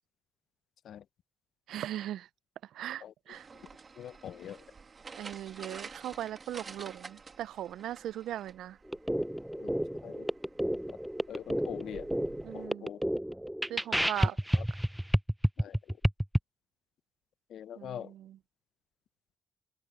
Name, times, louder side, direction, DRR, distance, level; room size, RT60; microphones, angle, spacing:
voice 1, 1.7-2.3 2.7-3.5 5.1-8.8 12.4-12.9 13.7-14.4 17.8-18.4, right 12 dB, 80° right, 0.3 m, -39 dB
sound 1, 3.3-12.7, right 4 dB, 35° right, 2.3 m, -51 dB
voice 2, 4.0-4.6 9.6-9.7 10.0-10.3 11.3-12.1 12.5-13.0 14.2-14.6 15.6-16.0 17.5-18.1, left 10 dB, 70° left, 0.5 m, -43 dB
sound 2, 8.9-16.4, equal, 5° right, 0.6 m, -30 dB
cardioid pair, 90°, 0 cm